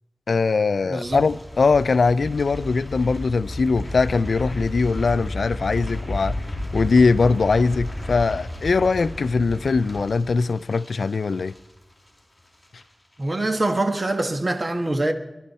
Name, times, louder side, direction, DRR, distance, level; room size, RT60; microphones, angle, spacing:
voice 1, 0.3-6.4 6.7-11.5, left 4 dB, 85° left, 0.4 m, -21 dB
voice 2, 0.8-1.2 13.2-15.1, right 2 dB, 40° right, 1.4 m, -24 dB
sound 1, 1.0-12.2 12.5-12.8 13.1-13.2, left 1 dB, 10° left, 4.1 m, -33 dB
23.5 x 11.5 x 4.2 m
wide cardioid pair, 75°, 0 cm